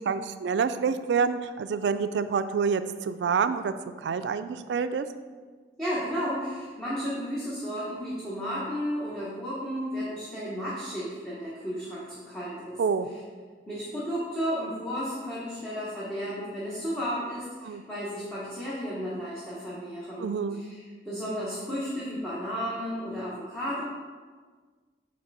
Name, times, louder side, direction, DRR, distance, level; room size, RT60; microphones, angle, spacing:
voice 1, 0.0-5.1 12.8-13.1 17.6-17.8 20.2-20.6, right 6 dB, 85° right, 11 dB, 0.3 m, -27 dB
voice 2, 5.8-12.8 13.7-23.8, equal, 5° left, -9 dB, 1.0 m, -33 dB
7.8 x 3.2 x 4.1 m, 1.5 s
head